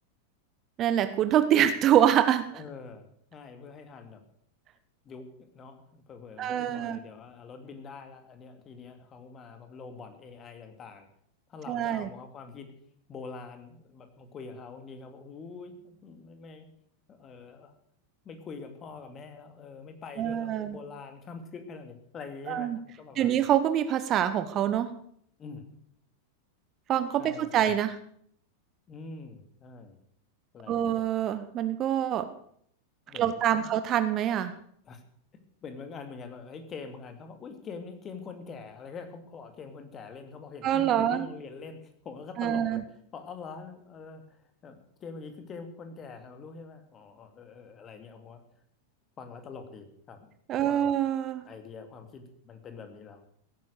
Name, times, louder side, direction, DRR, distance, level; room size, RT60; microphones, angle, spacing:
voice 1, 0.8-2.5 6.4-7.0 11.7-12.1 20.2-20.8 22.5-22.8 23.2-24.9 26.9-28.0 30.7-32.3 33.1-34.5 40.6-41.3 42.4-42.8 50.5-51.4, right 10 dB, 30° right, 11 dB, 1.0 m, -25 dB
voice 2, 2.5-4.2 5.0-5.3 5.5-11.1 11.5-12.7 13.1-16.7 17.1-17.7 18.2-23.4 25.4-25.7 27.2-27.7 28.9-30.0 30.5-31.0 33.1-33.7 34.9-35.0 35.6-42.8 43.1-48.4 49.2-50.3 50.6-50.9 51.4-53.2, left 4 dB, 25° left, 7 dB, 2.4 m, -44 dB
16.5 x 9.6 x 6.8 m, 0.67 s
figure-of-eight pair, 90°, 0 cm